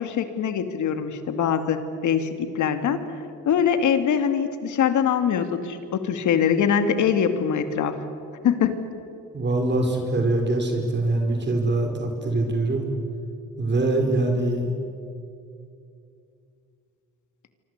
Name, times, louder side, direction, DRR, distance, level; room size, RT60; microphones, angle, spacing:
voice 1, 0.0-3.0 3.5-8.0 8.4-8.8, left 7 dB, 75° left, 8 dB, 2.5 m, -23 dB
voice 2, 9.3-12.9 13.6-14.7, right 2 dB, 35° right, 3 dB, 5.0 m, -23 dB
27.0 x 24.5 x 8.2 m, 2.5 s
cardioid pair, 90°, 30 cm